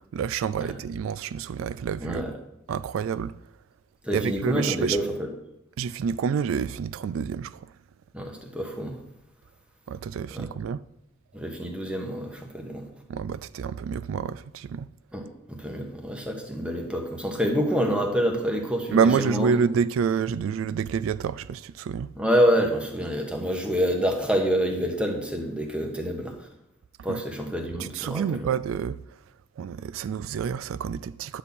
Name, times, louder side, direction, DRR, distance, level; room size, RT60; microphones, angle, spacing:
voice 1, 0.0-2.3 2.7-3.4 4.1-5.0 5.8-7.7 9.9-10.8 13.1-14.9 18.9-22.1 27.1-27.2 27.8-29.0 29.6-31.4, right 6 dB, 80° right, 0.3 m, -28 dB
voice 2, 2.0-2.3 4.0-5.3 8.1-9.0 10.3-10.5 11.3-12.8 15.1-19.5 22.1-26.3 27.0-28.5, equal, 5° right, 1.2 m, -27 dB
10.0 x 4.2 x 7.2 m
head